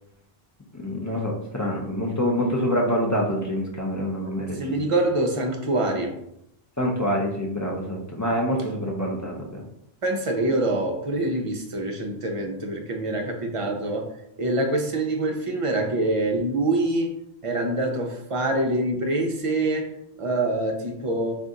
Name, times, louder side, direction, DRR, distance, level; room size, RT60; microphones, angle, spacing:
voice 1, 0.7-4.7 6.8-9.6, equal, 20° left, -3 dB, 0.5 m, -26 dB
voice 2, 4.5-6.2 10.0-14.1 14.4-17.1 17.4-21.3, right 2 dB, 40° right, 2 dB, 0.5 m, -25 dB
4.0 x 2.5 x 3.7 m, 0.78 s
omnidirectional pair, 1.1 m